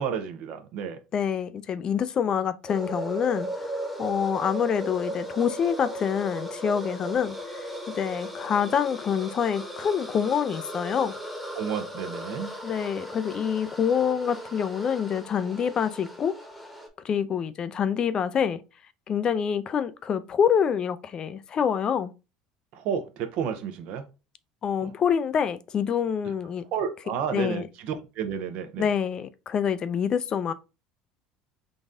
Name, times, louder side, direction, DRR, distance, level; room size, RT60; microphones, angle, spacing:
voice 1, 0.0-1.0 11.5-12.5 22.7-24.0 24.8-24.9 26.2-26.3 26.7-28.9, right 7 dB, 65° right, 0.8 m, -31 dB
voice 2, 1.1-7.7 7.9-11.1 12.6-16.4 17.0-18.6 19.1-22.1 24.6-26.6 27.3-27.6 28.8-30.5, left 7 dB, 40° left, 0.4 m, -26 dB
sound 1, 2.7-16.9, equal, ahead, 1.0 m, -37 dB
4.0 x 2.5 x 3.5 m
supercardioid pair, 105°, 2 cm